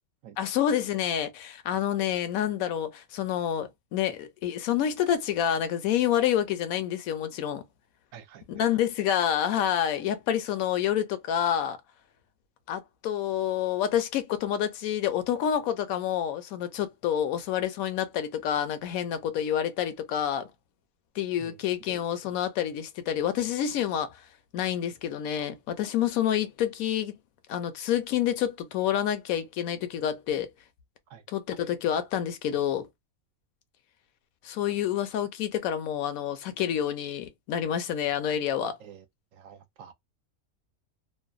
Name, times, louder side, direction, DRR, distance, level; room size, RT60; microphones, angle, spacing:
voice 1, 0.4-7.6 8.5-11.8 12.7-20.5 21.2-24.2 24.5-27.1 27.5-30.5 31.3-32.9 34.4-38.8, left 10 dB, 75° left, 1.0 m, -28 dB
voice 2, 8.1-8.5 21.4-21.6 31.1-31.2 38.8-39.1 39.3-39.9, right 8 dB, 70° right, 0.9 m, -48 dB
2.6 x 2.2 x 2.3 m
omnidirectional pair, 1.5 m